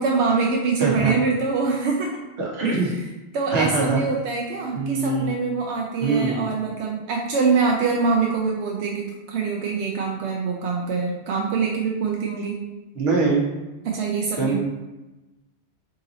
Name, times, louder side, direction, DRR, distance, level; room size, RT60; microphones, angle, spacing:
voice 1, 0.0-2.1 2.8-2.9 3.3-12.6 13.8-14.6, right 4 dB, 90° right, -1 dB, 0.9 m, -24 dB
voice 2, 0.8-1.1 2.4-2.9 3.5-4.0 4.7-5.3 6.0-6.5 12.9-13.4 14.4-14.6, right 4 dB, 70° right, -2 dB, 1.1 m, -23 dB
3.9 x 2.7 x 3.9 m, 1.1 s
omnidirectional pair, 1.1 m